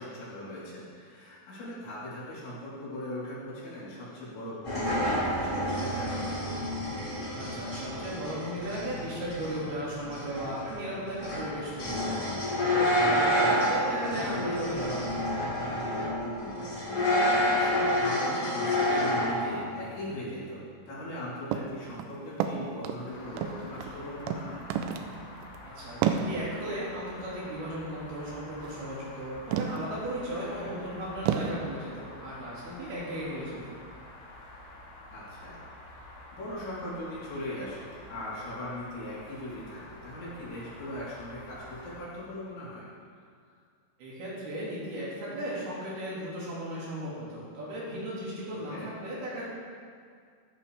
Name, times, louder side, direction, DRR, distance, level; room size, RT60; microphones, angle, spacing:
voice 1, 0.0-6.5 13.2-13.8 16.2-16.7 17.0-24.6 30.4-30.7 35.1-35.7 35.9-42.9 48.5-48.9, left 1 dB, 60° left, -10 dB, 5.9 m, -40 dB
sound 1, 4.6-19.7, equal, 25° left, 1.7 m, -29 dB
voice 2, 7.3-15.1 25.6-33.8 44.0-49.4, equal, 55° right, -7 dB, 4.1 m, -36 dB
sound 2, 21.5-21.7 22.0-23.0 23.4-24.0 24.3-24.4 24.7-25.1 25.4-25.6 26.0-26.3 28.6-28.8 29.5-29.9 30.4-30.5 31.3-31.5, right 8 dB, 80° right, 3.2 m, -29 dB
sound 3, 23.1-42.0, left 1 dB, 85° left, 5.8 m, -48 dB
14.5 x 12.5 x 3.5 m, 2.1 s
omnidirectional pair, 5.9 m